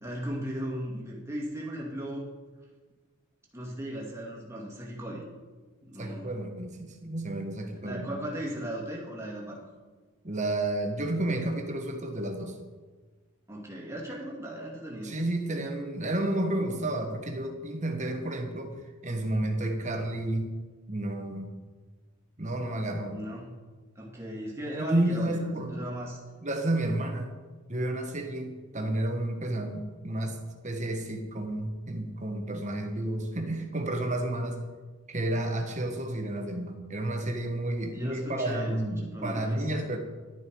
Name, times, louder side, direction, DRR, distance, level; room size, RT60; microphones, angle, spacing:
voice 1, 0.0-2.3 3.5-5.2 5.8-6.3 7.8-9.6 13.5-15.2 23.1-23.6 24.0-26.2 37.9-39.7, equal, 10° right, -4 dB, 2.2 m, -37 dB
voice 2, 6.0-8.1 10.2-12.6 15.0-18.7 19.0-20.5 20.9-21.5 22.4-23.2 24.7-25.9 26.4-27.3 27.7-34.6 35.1-40.0, right 1 dB, 30° right, 4 dB, 1.3 m, -31 dB
11.5 x 10.5 x 4.6 m, 1.4 s
head